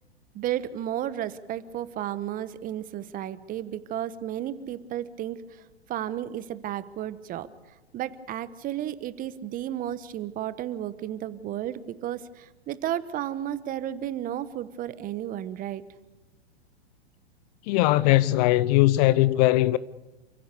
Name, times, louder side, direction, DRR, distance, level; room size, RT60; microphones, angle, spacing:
voice 1, 0.3-5.4 5.9-7.5 7.9-15.8, right 11 dB, 25° right, 1.1 m, -33 dB
voice 2, 17.7-19.8, left 16 dB, 40° left, 0.7 m, -20 dB
29.0 x 16.0 x 6.9 m
hypercardioid pair, 115°, 32 cm